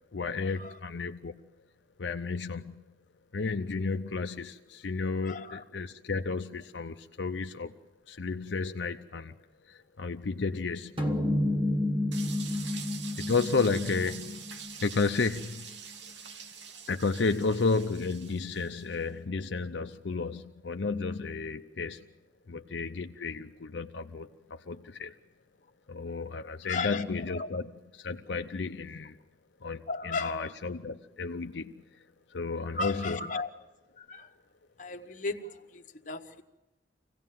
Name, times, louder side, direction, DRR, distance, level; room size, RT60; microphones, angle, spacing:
voice 1, 0.1-1.5 2.0-2.8 3.3-7.7 8.1-9.4 9.7-11.0 13.2-14.4 14.8-15.8 16.9-22.1 22.5-25.1 25.9-29.2 29.6-32.0 32.3-33.2, left 4 dB, 75° left, 6 dB, 0.6 m, -32 dB
voice 2, 5.2-5.6 26.6-27.5 29.9-30.5 32.7-33.5 34.0-34.3 34.8-36.4, left 3 dB, 45° left, 5 dB, 1.2 m, -36 dB
sound 1, 11.0-15.6, left 1 dB, 30° right, 1.2 m, -31 dB
sound 2, 12.1-19.0, right 6 dB, 85° right, 1.4 m, -45 dB
25.5 x 17.0 x 7.5 m, 1.1 s
head